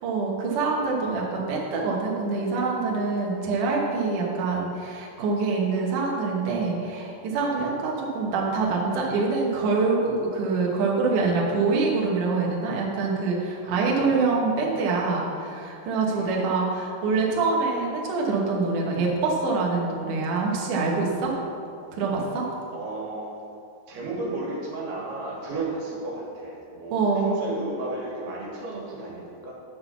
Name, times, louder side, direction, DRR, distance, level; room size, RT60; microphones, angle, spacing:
voice 1, 0.0-21.3 21.9-22.5 26.9-27.4, right 4 dB, 65° right, -3 dB, 2.3 m, -25 dB
voice 2, 22.7-23.3 23.9-29.5, right 2 dB, 85° right, -4 dB, 3.5 m, -33 dB
9.9 x 3.8 x 7.0 m, 2.5 s
omnidirectional pair, 4.5 m